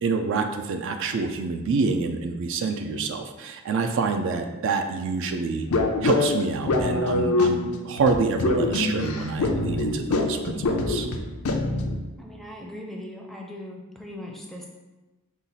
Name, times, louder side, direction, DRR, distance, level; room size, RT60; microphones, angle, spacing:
voice 1, 0.0-5.7 6.0-11.1, right 4 dB, 60° right, 6 dB, 0.4 m, -27 dB
sound 1, 5.7-12.0, left 2 dB, 85° left, 0.5 m, -25 dB
voice 2, 12.2-14.7, left 1 dB, ahead, -1 dB, 0.5 m, -39 dB
5.6 x 2.4 x 4.0 m, 1.1 s
head